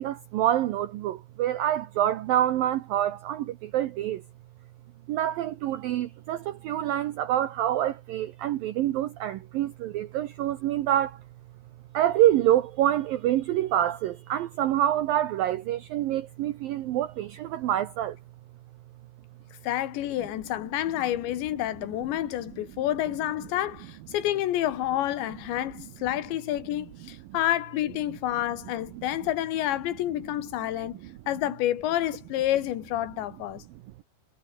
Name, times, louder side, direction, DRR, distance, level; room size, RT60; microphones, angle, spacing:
voice 1, 0.0-4.2 5.1-11.2 11.9-18.2 28.9-29.0, right 12 dB, 80° right, 2.1 m, -26 dB
voice 2, 19.6-31.0 31.3-33.6, left 13 dB, 75° left, 3.7 m, -29 dB
omnidirectional pair, 5.3 m